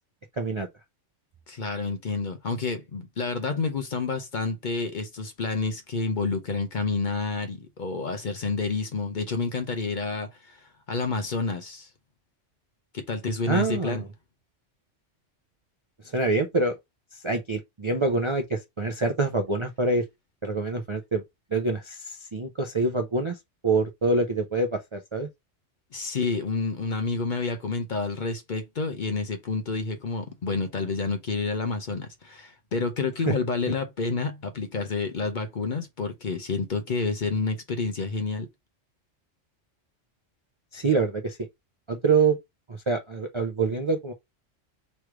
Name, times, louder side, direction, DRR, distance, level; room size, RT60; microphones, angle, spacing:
voice 1, 0.3-0.7 13.5-14.1 16.0-16.7 17.1-20.0 20.4-21.2 21.5-23.4 23.6-25.3 33.3-33.4 40.7-41.4 41.9-42.4 42.7-44.1, right 3 dB, 40° right, 0.4 m, -26 dB
voice 2, 1.5-11.9 12.9-14.0 25.9-38.5, left 4 dB, 50° left, 0.7 m, -29 dB
3.2 x 3.1 x 4.7 m
omnidirectional pair, 1.2 m